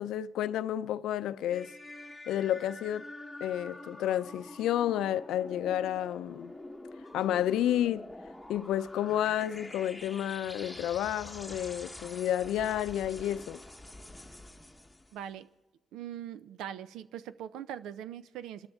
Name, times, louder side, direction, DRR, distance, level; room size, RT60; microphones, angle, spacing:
voice 1, 0.0-1.7 2.3-3.1 3.4-6.5 7.1-8.1 8.5-13.6, left 11 dB, 85° left, 0.5 m, -30 dB
sound 1, 1.5-15.2, left 1 dB, 5° left, 1.2 m, -47 dB
voice 2, 15.1-15.5 15.9-18.7, right 10 dB, 85° right, 0.6 m, -41 dB
28.5 x 13.0 x 3.6 m
cardioid pair, 90°, 0 cm